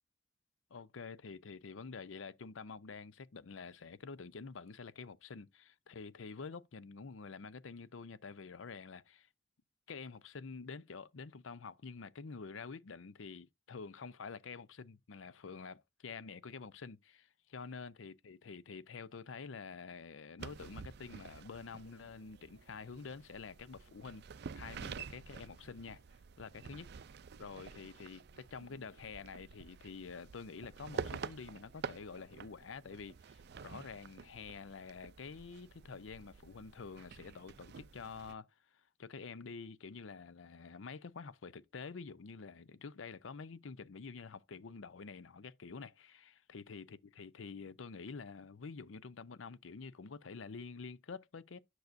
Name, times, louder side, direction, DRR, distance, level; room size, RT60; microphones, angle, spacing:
voice 1, 0.7-9.3 9.9-24.2 24.6-26.0 26.4-26.9 27.4-38.5 38.7-51.6, left 5 dB, 90° left, 0.6 m, -48 dB
sound 1, 20.4-38.3, right 5 dB, 60° right, 0.4 m, -49 dB
10.5 x 6.4 x 2.6 m
head